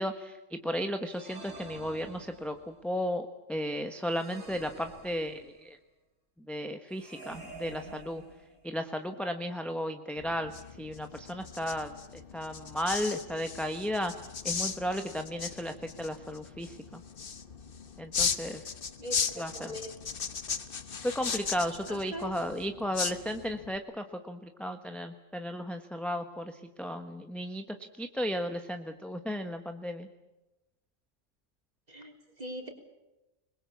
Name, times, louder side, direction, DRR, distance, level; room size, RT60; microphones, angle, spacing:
voice 1, 0.0-5.8 6.5-8.2 8.6-10.5 10.8-14.1 14.4-17.0 18.0-18.7 19.4-19.7 21.0-30.1, equal, ahead, 6 dB, 1.1 m, -34 dB
sound 1, 1.1-2.8 4.1-5.7 6.9-8.8, right 2 dB, 85° right, 3.7 m, -49 dB
sound 2, 10.2-23.8, left 5 dB, 45° left, 1.3 m, -37 dB
voice 2, 19.0-20.0 21.9-22.3 31.9-32.7, equal, 30° right, 3 dB, 3.8 m, -41 dB
27.0 x 21.5 x 7.1 m, 0.99 s
omnidirectional pair, 1.3 m